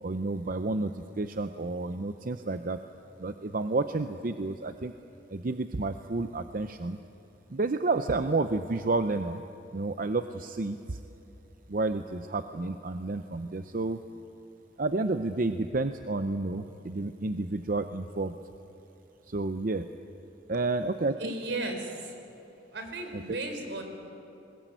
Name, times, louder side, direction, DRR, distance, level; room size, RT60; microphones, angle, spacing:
voice 1, 0.0-2.8 3.2-4.9 5.3-7.0 7.5-9.4 9.7-11.0 11.7-14.0 14.8-18.4 19.3-19.9 20.5-21.3 23.1-23.2, right 3 dB, 50° right, 9 dB, 0.7 m, -30 dB
voice 2, 21.2-22.2 22.7-23.8, right 2 dB, 80° right, 5 dB, 3.9 m, -35 dB
21.0 x 20.5 x 9.2 m, 2.9 s
head